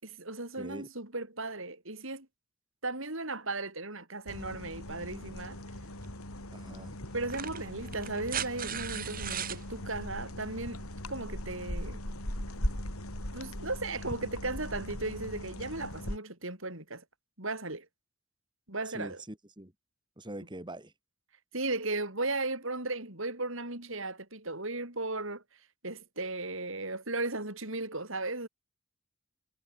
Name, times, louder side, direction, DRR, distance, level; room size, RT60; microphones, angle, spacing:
voice 1, 0.0-2.3 2.8-5.6 7.1-12.0 13.3-17.0 17.4-17.9 18.7-19.2 21.5-25.4 25.8-28.5, right 2 dB, 60° right, 6.4 m, -36 dB
voice 2, 0.5-0.9 6.5-6.9 18.9-19.7 20.2-20.9, right 1 dB, 20° right, 2.6 m, -43 dB
sound 1, 4.3-16.2, left 1 dB, 80° left, 6.4 m, -39 dB
sound 2, 6.0-6.2 7.2-9.6 11.1-11.2, right 9 dB, 40° right, 5.3 m, -37 dB
head